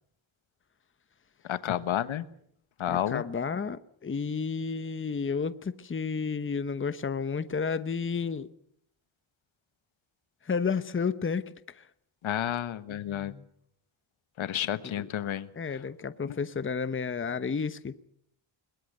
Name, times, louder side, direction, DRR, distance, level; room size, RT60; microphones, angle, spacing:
voice 1, 1.4-2.3 2.8-3.2 12.2-13.3 14.4-15.8 16.2-16.4, left 11 dB, 80° left, 1.4 m, -31 dB
voice 2, 2.9-8.5 10.4-11.9 13.1-13.4 14.8-15.1 15.6-18.0, left 5 dB, 25° left, 1.0 m, -32 dB
21.5 x 21.5 x 6.6 m
cardioid pair, 110°, 47 cm